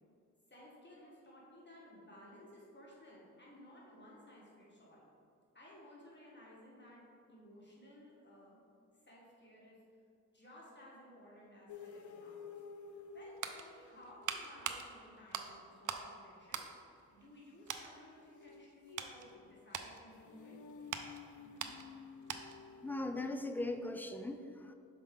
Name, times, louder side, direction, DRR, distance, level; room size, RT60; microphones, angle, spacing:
voice 1, 0.5-5.0 5.5-7.0 7.3-8.6 9.0-9.8 10.3-12.5 12.9-16.7 17.1-20.6, left 1 dB, 35° left, -5 dB, 1.5 m, -57 dB
sound 1, 11.7-14.3 17.8-23.0, left 5 dB, 75° left, 0.5 m, -53 dB
sound 2, 13.0-16.1 16.4-17.4 17.7-17.9 18.5-22.7 23.0-23.2, right 7 dB, 80° right, 0.5 m, -44 dB
voice 2, 22.8-24.7, left 2 dB, 5° left, 6 dB, 0.5 m, -39 dB
6.5 x 4.7 x 3.8 m, 2.4 s
cardioid pair, 60°, 30 cm